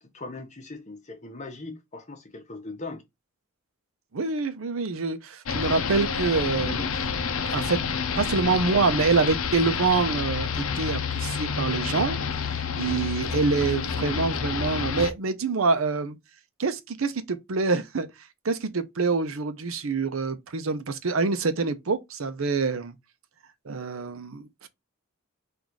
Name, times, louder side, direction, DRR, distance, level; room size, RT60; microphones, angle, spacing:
voice 1, 0.0-3.0, left 3 dB, 35° left, 1.0 m, -40 dB
voice 2, 4.1-7.1 7.5-7.8 8.2-10.5 10.8-12.2 12.8-16.2 16.6-18.1 18.4-22.9 23.7-24.7, right 4 dB, 70° right, 0.6 m, -26 dB
sound 1, 5.5-15.1, left 6 dB, 70° left, 0.6 m, -29 dB
3.9 x 2.6 x 4.5 m
head